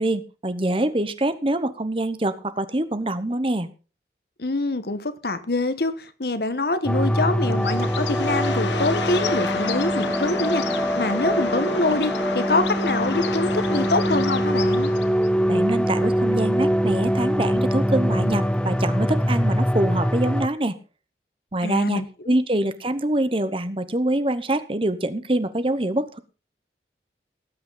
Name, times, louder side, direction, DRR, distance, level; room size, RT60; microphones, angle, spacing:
voice 1, 0.0-3.7 15.5-20.8 21.5-26.2, right 1 dB, 30° right, 12 dB, 1.0 m, -25 dB
voice 2, 4.4-14.9 21.6-22.3, left 2 dB, 60° left, 11 dB, 1.2 m, -25 dB
sound 1, 6.9-20.5, equal, 5° left, 0.6 m, -23 dB
Bird, 7.5-15.3, left 5 dB, 80° left, 1.1 m, -31 dB
18.5 x 8.8 x 4.0 m, 0.34 s
head